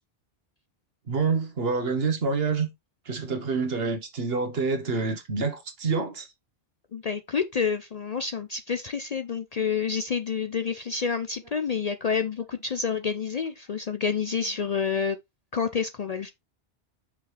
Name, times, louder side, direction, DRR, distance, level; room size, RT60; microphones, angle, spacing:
voice 1, 1.1-2.7 3.0-6.3, right 4 dB, 65° right, 1.4 m, -27 dB
voice 2, 6.9-15.2 15.5-16.3, left 6 dB, 50° left, 0.5 m, -28 dB
5.9 x 4.8 x 3.3 m
omnidirectional pair, 1.1 m